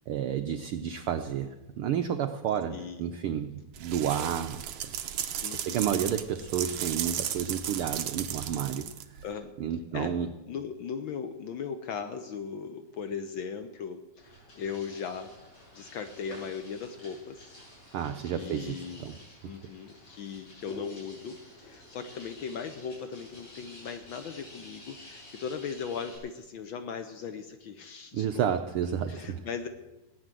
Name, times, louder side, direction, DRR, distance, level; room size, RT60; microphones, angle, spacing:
voice 1, 0.1-5.0 5.5-9.2 9.6-10.3 17.9-19.1 28.1-29.5, right 9 dB, 90° right, 7 dB, 1.2 m, -31 dB
voice 2, 2.7-3.2 5.4-5.9 9.2-9.5 9.9-10.2 10.5-15.3 15.7-17.5 18.2-19.1 19.4-28.6 29.1-29.7, left 6 dB, 90° left, 9 dB, 1.0 m, -38 dB
sound 1, 3.7-9.3, right 10 dB, 65° right, 1.7 m, -35 dB
sound 2, 14.2-26.2, left 1 dB, 65° left, 8.2 m, -51 dB
17.0 x 10.0 x 7.6 m, 1.1 s
omnidirectional pair, 3.3 m